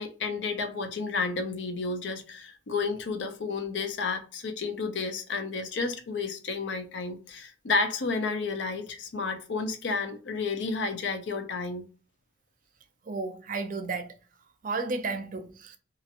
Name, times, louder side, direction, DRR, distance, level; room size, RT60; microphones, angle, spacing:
voice 1, 0.0-11.8, left 4 dB, 70° left, 0.5 m, -31 dB
voice 2, 13.1-14.1 14.6-15.8, right 3 dB, 45° right, 0.4 m, -33 dB
2.9 x 2.5 x 2.4 m
head